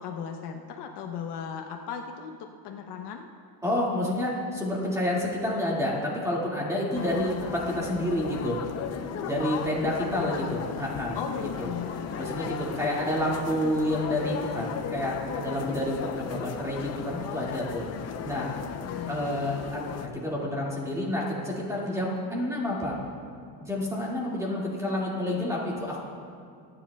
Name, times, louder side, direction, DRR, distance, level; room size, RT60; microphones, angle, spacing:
voice 1, 0.0-3.3 7.3-7.5 10.0-10.9 11.1-13.0 18.8-19.3, left 7 dB, 55° left, 3 dB, 0.9 m, -38 dB
voice 2, 3.6-8.6 9.2-11.2 11.6-11.7 12.2-17.8 18.2-18.5 19.1-22.9 23.6-26.0, left 1 dB, 5° right, -4 dB, 2.1 m, -29 dB
sound 1, 6.9-20.1, left 7 dB, 35° left, 0.6 m, -36 dB
25.0 x 10.0 x 2.3 m, 2.3 s
cardioid pair, 150°, 47 cm